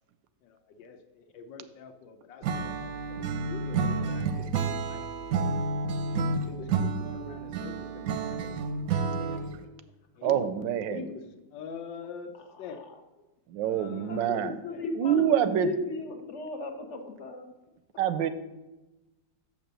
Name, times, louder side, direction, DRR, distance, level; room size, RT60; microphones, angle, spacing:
voice 1, 0.4-5.0 5.3-5.5 6.4-8.7 9.2-9.5 10.2-10.5 10.9-11.2 11.5-12.3 12.6-12.9 13.6-14.4 14.7-14.8, left 5 dB, 80° left, 7 dB, 1.5 m, -44 dB
Acoustic guitar / Strum, 2.4-9.6, right 4 dB, 65° right, 0.9 m, -30 dB
voice 2, 10.2-11.0 13.5-14.5 15.0-15.7 18.0-18.3, right 10 dB, 85° right, 12 dB, 1.3 m, -26 dB
voice 3, 12.3-13.0 14.0-17.5, left 3 dB, 55° left, 6 dB, 0.9 m, -37 dB
6.9 x 5.9 x 6.7 m, 1.0 s
omnidirectional pair, 2.0 m